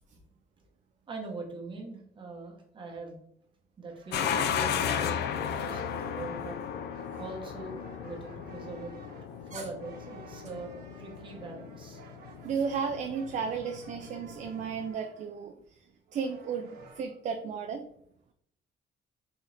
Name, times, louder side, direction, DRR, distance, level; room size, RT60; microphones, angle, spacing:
voice 1, 1.1-3.2 3.8-6.6 7.2-8.9 9.5-12.0, right 3 dB, 25° right, 0 dB, 1.0 m, -42 dB
sound 1, 3.9-17.1, right 4 dB, 60° right, 0.9 m, -54 dB
sound 2, 4.1-14.9, left 8 dB, 70° left, 0.4 m, -35 dB
voice 2, 12.4-15.5 16.1-17.9, right 6 dB, 40° right, 5 dB, 0.4 m, -34 dB
4.1 x 3.8 x 3.2 m, 0.70 s
cardioid pair, 160°, 18 cm